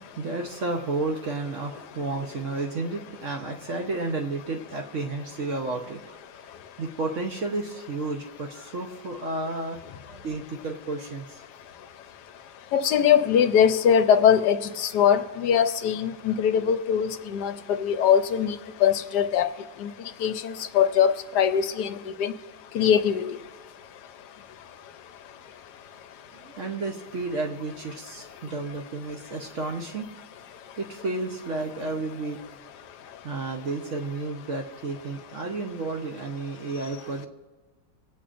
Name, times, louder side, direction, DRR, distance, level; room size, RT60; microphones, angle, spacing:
voice 1, 0.0-6.2 6.8-9.8 10.1-11.4 26.3-30.1 30.8-32.6 33.2-37.3, right 3 dB, 55° right, 1 dB, 0.9 m, -32 dB
voice 2, 12.7-18.6 18.8-19.5 19.8-19.9 20.2-22.3 22.7-23.4, left 8 dB, 75° left, 9 dB, 1.1 m, -22 dB
24.5 x 8.5 x 2.5 m, 1.4 s
omnidirectional pair, 1.9 m